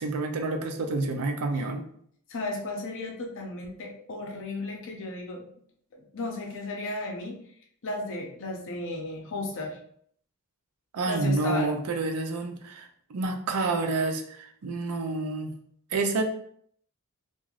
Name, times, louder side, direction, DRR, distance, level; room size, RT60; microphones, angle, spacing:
voice 1, 0.0-1.8 10.9-15.5 15.9-16.2, right 3 dB, 75° right, 5 dB, 0.4 m, -29 dB
voice 2, 2.3-5.5 5.9-7.4 7.8-9.8 11.1-11.8, left 2 dB, 60° left, 2 dB, 0.6 m, -34 dB
3.2 x 2.4 x 2.4 m, 0.64 s
head